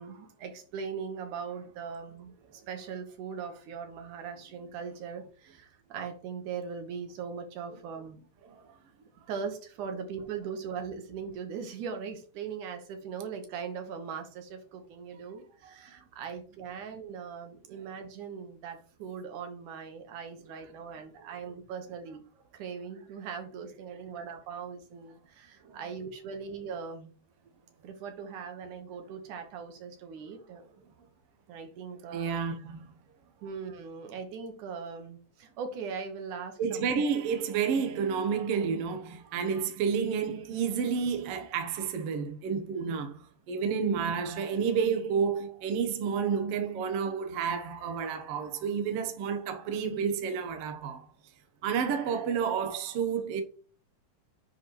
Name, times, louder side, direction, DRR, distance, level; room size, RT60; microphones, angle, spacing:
voice 1, 0.0-8.2 9.3-22.2 22.5-27.1 27.8-30.6 31.5-32.4 33.4-36.9, right 6 dB, 80° right, 2.8 m, -40 dB
voice 2, 32.1-32.9 36.6-51.1 51.6-53.4, right 6 dB, 60° right, 1.9 m, -30 dB
10.0 x 5.1 x 3.1 m
omnidirectional pair, 3.5 m